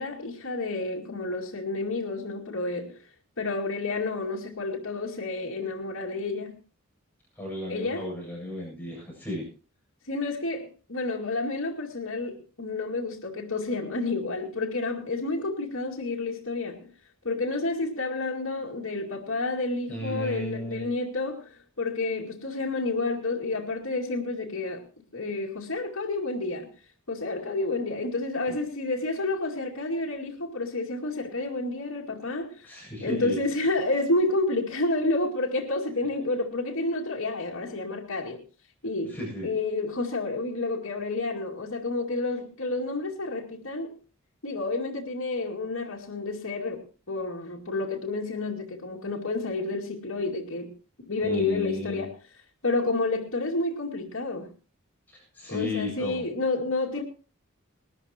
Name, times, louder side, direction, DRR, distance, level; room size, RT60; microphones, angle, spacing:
voice 1, 0.0-3.0 3.4-6.6 7.7-8.1 10.1-16.9 17.2-21.5 21.8-24.8 25.1-26.7 27.1-32.7 33.0-38.4 38.8-39.2 39.4-44.0 44.4-46.8 47.1-50.7 51.1-52.1 52.6-54.5 55.5-57.0, left 2 dB, 75° left, 2.4 m, -30 dB
voice 2, 7.4-9.5 19.9-20.9 28.5-28.6 32.6-33.4 39.1-39.5 51.2-52.1 55.1-56.2, left 1 dB, 10° left, 7.7 m, -34 dB
20.5 x 13.0 x 3.0 m
head